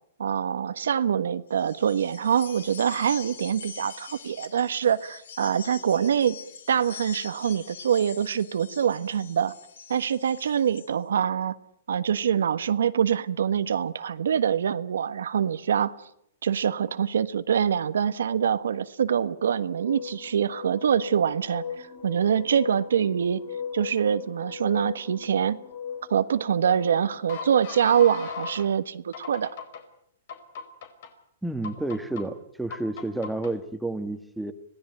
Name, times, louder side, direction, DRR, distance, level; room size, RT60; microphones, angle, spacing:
voice 1, 0.2-6.4 6.7-9.5 9.9-11.5 11.9-15.9 16.4-23.4 23.7-25.6 26.1-29.5, right 8 dB, 85° right, 12 dB, 1.4 m, -25 dB
sound 1, 1.5-10.9, left 6 dB, 85° left, 3.4 m, -44 dB
sound 2, 19.6-28.7 29.1-29.8 30.3-31.1 31.6-32.2 32.7-33.5, left 6 dB, 60° left, 4.4 m, -38 dB
voice 2, 31.4-34.5, right 2 dB, 5° right, 8 dB, 1.8 m, -30 dB
25.5 x 17.5 x 9.1 m, 0.72 s
hypercardioid pair, 145°, 0 cm